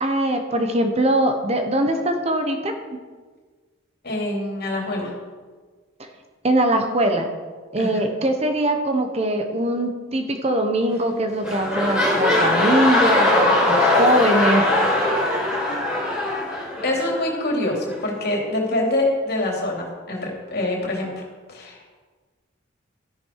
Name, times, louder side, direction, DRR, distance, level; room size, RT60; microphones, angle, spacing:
voice 1, 0.0-2.7 6.4-7.3 7.7-14.7, right 1 dB, 30° right, 5 dB, 1.0 m, -22 dB
voice 2, 4.0-5.1 7.8-8.0 16.8-21.2 21.5-21.9, left 1 dB, 50° left, -1 dB, 3.2 m, -25 dB
sound 1, 10.9-11.1 11.4-17.2 17.9-18.0, left 1 dB, 5° right, 4.7 m, -20 dB
13.0 x 10.5 x 4.7 m, 1.4 s
head